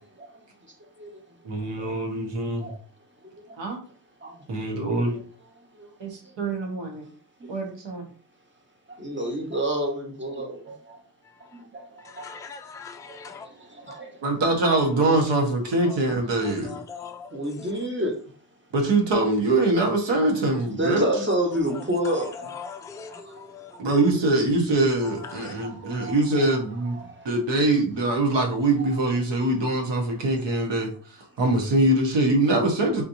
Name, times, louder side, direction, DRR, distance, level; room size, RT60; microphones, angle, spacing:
voice 1, 0.1-6.4 7.0-7.6 8.9-11.0 11.4-12.4 13.0-14.4 15.3-15.5 16.6-16.7 17.3-18.6 20.6-23.5 23.7-24.1 25.1-27.3 28.8-29.0 31.3-31.4 32.5-32.6 33.0-33.1, right 1 dB, 25° right, 1.3 m, -32 dB
voice 2, 1.4-2.7 3.6-3.8 4.5-5.2 6.0-7.1 7.5-8.0 14.2-16.8 18.7-21.0 23.8-27.0 27.2-30.9 31.4-33.0, right 2 dB, 80° right, 1.2 m, -23 dB
voice 3, 12.0-13.5 14.7-14.8 15.8-16.1 16.4-17.7 21.7-21.8 22.1-23.9 25.0-25.5, left 6 dB, 10° left, 0.3 m, -41 dB
4.2 x 2.9 x 2.7 m
cardioid pair, 70°, 42 cm